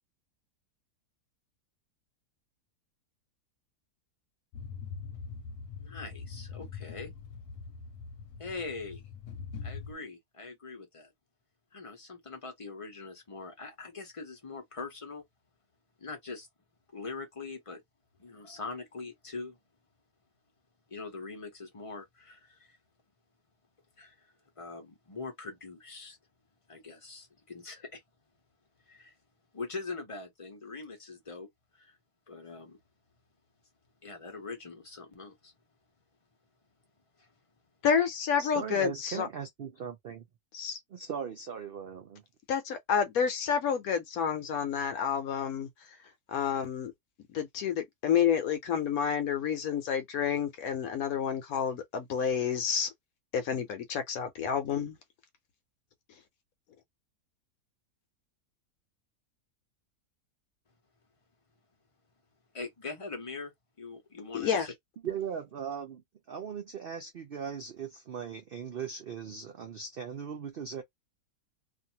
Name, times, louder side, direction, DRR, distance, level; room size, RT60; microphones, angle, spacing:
sound 1, 4.5-9.9, left 5 dB, 90° left, 1.1 m, -43 dB
voice 1, 5.8-7.1 8.4-9.0 9.6-11.1 11.7-15.2 16.0-16.5 16.9-17.8 18.2-19.6 20.9-22.8 24.0-24.2 24.6-26.2 26.7-28.0 28.9-29.1 29.5-31.5 31.7-32.0 32.3-32.8 34.0-35.5 37.2-37.3 62.5-63.5 63.8-64.7, left 3 dB, 30° left, 0.7 m, -42 dB
voice 2, 37.8-39.3 40.5-40.8 42.5-45.7 46.3-46.9 47.3-52.9 53.3-55.0 64.3-64.7, left 7 dB, 70° left, 1.1 m, -29 dB
voice 3, 38.4-40.2 40.9-42.2 65.0-66.0 66.3-70.8, right 7 dB, 75° right, 0.5 m, -38 dB
2.6 x 2.5 x 2.8 m
omnidirectional pair, 1.7 m